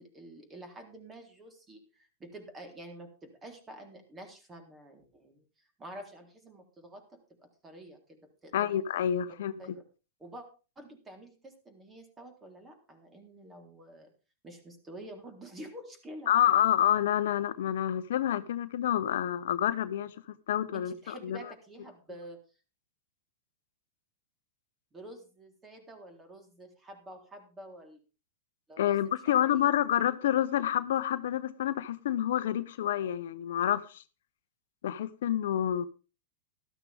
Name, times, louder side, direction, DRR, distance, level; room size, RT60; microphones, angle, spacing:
voice 1, 0.0-8.8 9.6-9.7 10.2-10.5 10.8-14.1 14.4-16.6 20.7-22.4 24.9-28.0 28.7-29.0 29.3-29.7, right 1 dB, 20° right, 3.7 m, -48 dB
voice 2, 8.5-9.5 16.3-20.1 20.5-21.4 28.8-34.0 34.8-35.9, left 11 dB, 70° left, 0.8 m, -28 dB
13.0 x 12.5 x 3.6 m
hypercardioid pair, 115°, 0 cm